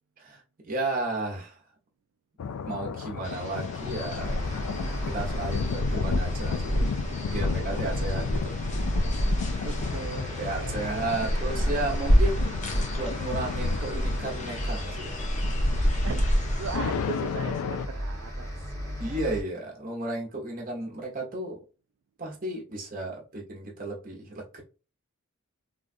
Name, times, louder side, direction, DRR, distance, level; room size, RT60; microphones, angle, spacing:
voice 1, 0.2-1.6 2.7-4.3 5.0-6.8 7.3-8.6 10.4-12.6 12.9-15.1 19.0-21.6 22.2-24.6, right 2 dB, 40° right, 1.0 m, -33 dB
sound 1, 2.4-17.9, left 6 dB, 75° left, 0.3 m, -34 dB
sound 2, 3.2-16.8, equal, 30° left, 0.6 m, -29 dB
sound 3, 4.2-19.4, equal, 15° left, 1.0 m, -36 dB
voice 2, 9.6-10.9 11.5-11.7 16.0-18.9, right 5 dB, 60° right, 0.3 m, -39 dB
3.6 x 2.4 x 2.5 m
head